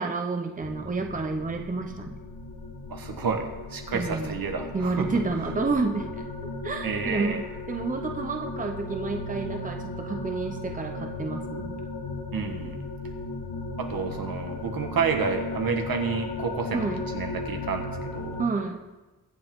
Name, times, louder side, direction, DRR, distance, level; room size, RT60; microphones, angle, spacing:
voice 1, 0.0-2.2 3.9-4.4 4.7-6.1 6.6-7.4 7.7-11.8 16.7-17.0 18.4-18.8, right 3 dB, 20° right, 4 dB, 0.9 m, -30 dB
sound 1, 0.6-18.5, left 2 dB, 65° left, 1.6 m, -36 dB
voice 2, 2.9-5.1 6.8-7.4 12.3-12.8 13.8-16.9 17.1-18.4, right 5 dB, 70° right, 4 dB, 1.7 m, -30 dB
22.5 x 7.7 x 3.8 m, 1.1 s
wide cardioid pair, 120°, 36 cm